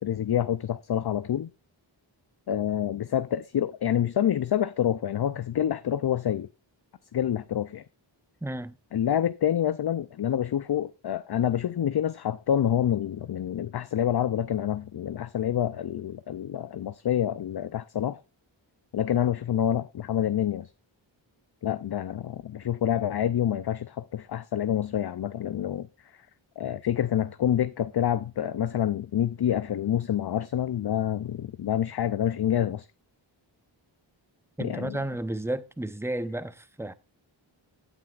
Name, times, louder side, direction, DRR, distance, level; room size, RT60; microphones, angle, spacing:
voice 1, 0.0-1.5 2.5-6.5 7.1-7.8 8.9-18.2 18.9-20.7 21.6-25.9 26.1-26.2 26.6-32.9 34.6-35.0, left 10 dB, 55° left, 0.5 m, -27 dB
voice 2, 8.4-8.8 34.6-36.9, right 1 dB, 5° right, 0.8 m, -32 dB
15.0 x 9.1 x 2.5 m
cardioid pair, 40°, 48 cm